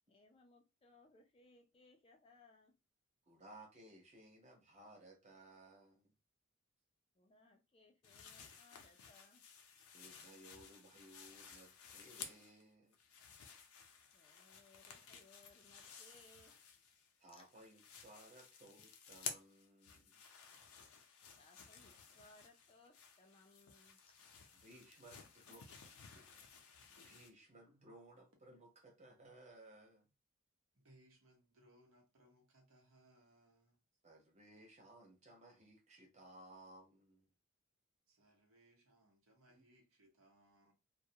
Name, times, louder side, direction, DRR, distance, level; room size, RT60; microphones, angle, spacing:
voice 1, 0.1-2.7 7.1-9.4 14.1-16.5 17.2-17.5 21.4-24.1, left 2 dB, 25° left, 0.3 m, -66 dB
voice 2, 3.3-6.1 9.9-13.0 17.2-20.2 24.6-25.7 26.1-26.5 26.9-30.1 34.0-37.3 39.6-39.7, right 1 dB, 30° right, 0.7 m, -60 dB
sound 1, 8.0-12.6 12.9-17.1 17.4-27.3, left 6 dB, 85° left, 0.5 m, -55 dB
voice 3, 30.7-33.8 38.1-40.7, right 1 dB, 75° right, 0.9 m, -69 dB
2.3 x 2.0 x 2.7 m
head